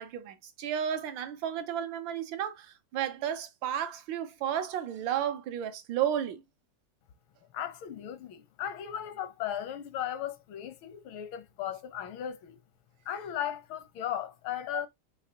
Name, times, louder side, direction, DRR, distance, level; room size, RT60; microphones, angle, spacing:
voice 1, 0.0-6.4, right 9 dB, 75° right, 1.4 m, -33 dB
voice 2, 7.5-12.6 13.0-14.9, left 10 dB, 85° left, 1.6 m, -36 dB
6.4 x 2.8 x 2.8 m
omnidirectional pair, 2.2 m